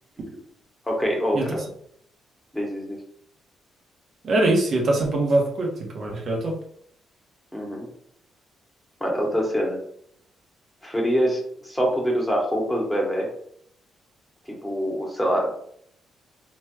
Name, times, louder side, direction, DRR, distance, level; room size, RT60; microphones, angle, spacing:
voice 1, 0.9-1.4 2.5-3.0 7.5-7.9 9.0-9.8 10.8-13.3 14.6-15.5, equal, 5° left, -2 dB, 1.0 m, -24 dB
voice 2, 4.2-6.6, right 2 dB, 55° right, 0 dB, 0.8 m, -23 dB
3.1 x 2.9 x 2.3 m, 0.66 s
cardioid pair, 90°, 0 cm